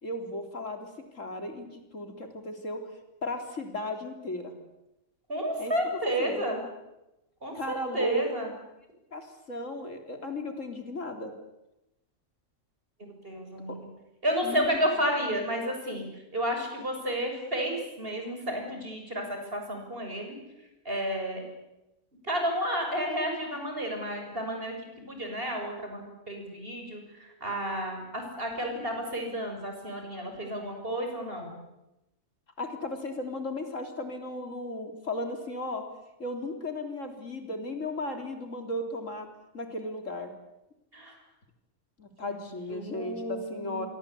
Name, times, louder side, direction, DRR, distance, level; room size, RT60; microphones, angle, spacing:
voice 1, 0.0-2.8 3.2-4.5 5.6-6.4 7.5-8.2 9.1-11.3 13.7-13.8 14.4-14.7 32.6-35.9 36.2-39.3 39.5-40.3 42.0-43.9, left 1 dB, 80° left, 5 dB, 3.9 m, -35 dB
voice 2, 5.3-6.6 7.4-8.5 13.2-13.8 14.2-16.0 16.3-20.4 20.9-21.4 22.2-24.7 25.1-27.0 27.4-31.6 40.9-41.1 42.2-42.4 42.7-43.9, equal, 45° right, 3 dB, 7.2 m, -31 dB
27.0 x 23.5 x 8.5 m, 0.93 s
omnidirectional pair, 1.3 m